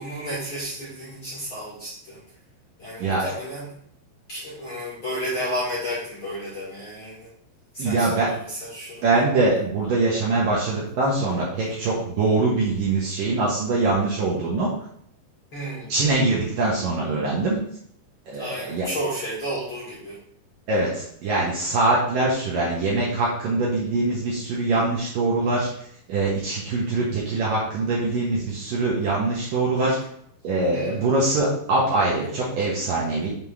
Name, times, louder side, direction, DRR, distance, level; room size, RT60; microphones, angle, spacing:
voice 1, 0.0-2.2 2.8-3.8 4.3-7.3 7.7-9.0 15.5-16.0 18.3-20.2 30.7-31.1, equal, 35° left, -8 dB, 2.3 m, -32 dB
voice 2, 3.0-3.3 7.8-8.3 9.0-14.7 15.9-17.6 18.3-18.9 20.7-25.7 26.1-30.0 30.4-33.3, right 2 dB, 65° right, -5 dB, 2.4 m, -23 dB
7.4 x 3.8 x 4.8 m, 0.67 s
omnidirectional pair, 5.2 m